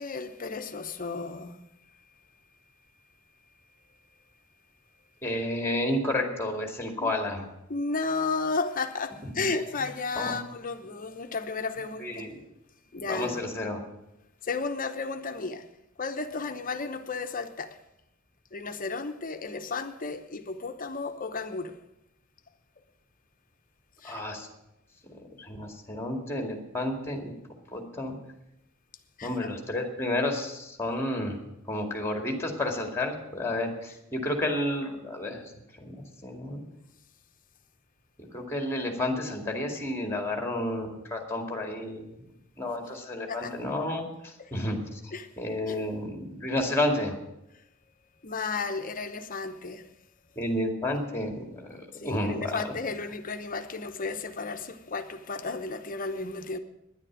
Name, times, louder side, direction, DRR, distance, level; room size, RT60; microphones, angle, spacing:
voice 1, 0.0-1.6 7.0-7.1 7.7-12.3 12.9-13.4 14.4-15.7 16.0-17.8 18.5-21.8 24.0-24.2 29.2-29.5 43.3-43.5 44.4-44.5 45.1-45.3 45.7-45.8 48.2-49.9 51.9-56.6, left 4 dB, 40° left, 0.9 m, -33 dB
voice 2, 5.2-7.5 10.2-10.4 12.0-12.3 13.1-13.8 24.0-24.5 25.4-27.3 27.7-28.2 29.2-31.4 31.7-35.4 35.8-36.6 38.2-42.2 42.6-45.0 45.4-47.2 50.4-52.7, left 1 dB, 10° left, 2.3 m, -31 dB
10.5 x 9.7 x 8.7 m
head